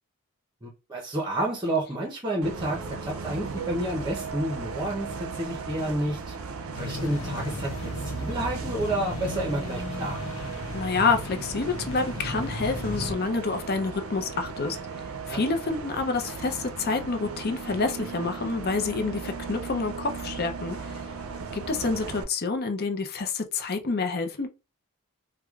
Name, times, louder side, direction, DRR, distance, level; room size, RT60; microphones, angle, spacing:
voice 1, 0.6-6.4 6.7-10.3 15.3-15.4 21.1-21.4, right 1 dB, 20° right, 0.7 m, -30 dB
Bus, 2.4-22.2, right 5 dB, 70° right, 0.5 m, -37 dB
sound 1, 6.7-13.1, left 1 dB, 75° left, 0.8 m, -35 dB
voice 2, 10.7-14.8 15.3-21.0 21.5-24.5, left 4 dB, 45° left, 0.6 m, -28 dB
4.7 x 2.2 x 2.4 m
head